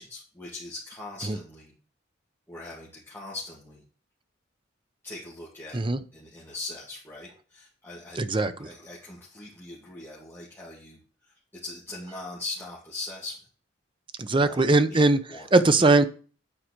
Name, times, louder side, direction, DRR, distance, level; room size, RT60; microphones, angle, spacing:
voice 1, 0.0-1.7 2.5-3.8 5.0-5.8 6.1-8.2 8.6-11.3 11.6-13.4 14.4-14.6 14.9-15.0 15.3-15.5 15.8-15.9, left 2 dB, 10° left, -7 dB, 2.3 m, -40 dB
voice 2, 8.2-8.7 14.2-15.2 15.5-16.1, right 2 dB, 25° right, 11 dB, 0.6 m, -20 dB
9.0 x 4.9 x 6.5 m, 0.40 s
head